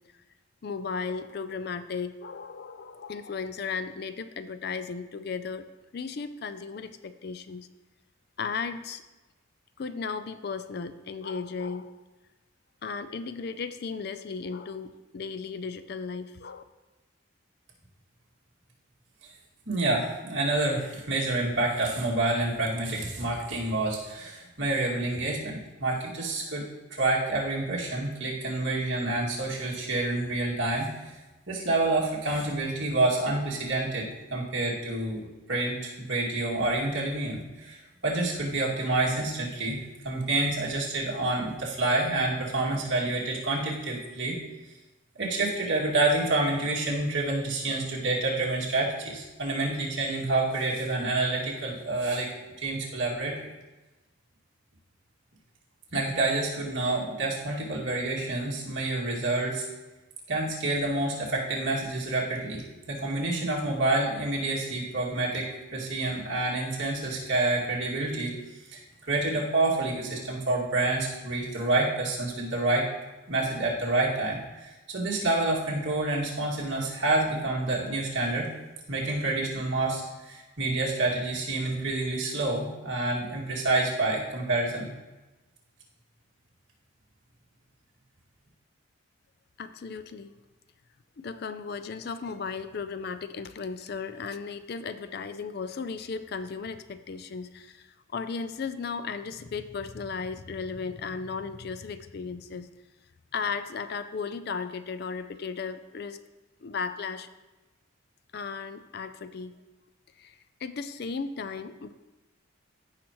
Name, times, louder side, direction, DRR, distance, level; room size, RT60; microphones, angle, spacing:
voice 1, 0.6-5.7 5.9-7.7 8.4-9.0 9.8-12.0 12.8-16.6 89.6-90.3 91.2-97.9 98.1-102.7 103.3-106.2 106.6-107.3 108.3-109.6 110.2-111.9, left 5 dB, 50° left, 11 dB, 0.4 m, -35 dB
voice 2, 19.7-26.6 26.9-31.1 31.5-44.4 45.2-53.5 55.9-59.7 60.3-68.4 68.7-72.9 73.3-78.5 78.9-84.9, right 2 dB, 60° right, -4 dB, 2.2 m, -28 dB
15.0 x 5.8 x 3.0 m, 1.1 s
head